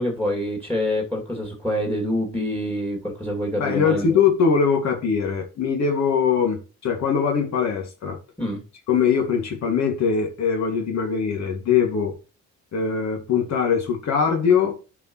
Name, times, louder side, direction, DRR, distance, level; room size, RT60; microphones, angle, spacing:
voice 1, 0.0-4.2 8.4-8.6, equal, 5° left, 2.7 m, -26 dB
voice 2, 3.6-6.6 6.8-8.2 8.9-12.1 12.7-14.9, left 6 dB, 65° left, 2.3 m, -21 dB
10.5 x 5.1 x 3.1 m
cardioid pair, 90°, 30 cm